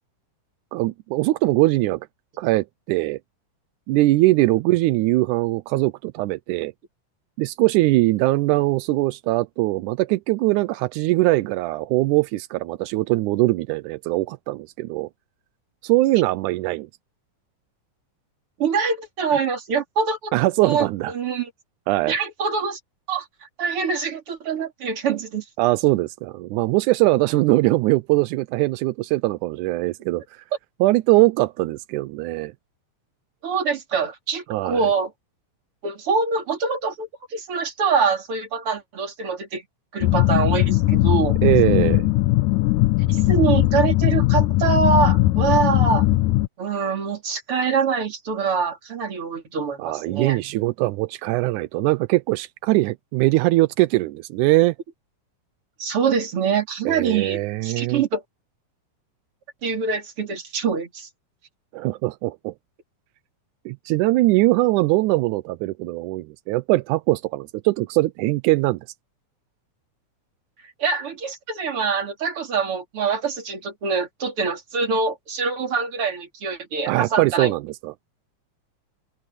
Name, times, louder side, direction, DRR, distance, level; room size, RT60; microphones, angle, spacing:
voice 1, 0.7-2.1 2.4-3.2 3.9-6.7 7.4-15.1 15.8-16.9 20.3-21.1 21.9-22.1 25.6-30.4 30.8-32.5 34.5-34.8 41.4-42.1 49.8-54.7 56.9-58.0 61.7-62.5 63.7-68.8 76.9-77.9, right 19 dB, 85° right, 2.1 m, -21 dB
voice 2, 18.6-20.3 20.6-21.5 22.1-22.8 23.1-23.3 23.6-25.4 33.4-35.1 35.8-39.6 39.9-41.4 43.1-46.1 46.6-50.4 55.8-58.2 59.6-61.1 70.8-77.5, right 5 dB, 45° right, 3.9 m, -24 dB
sound 1, 40.0-46.5, left 17 dB, 90° left, 2.2 m, -19 dB
open air
omnidirectional pair, 3.5 m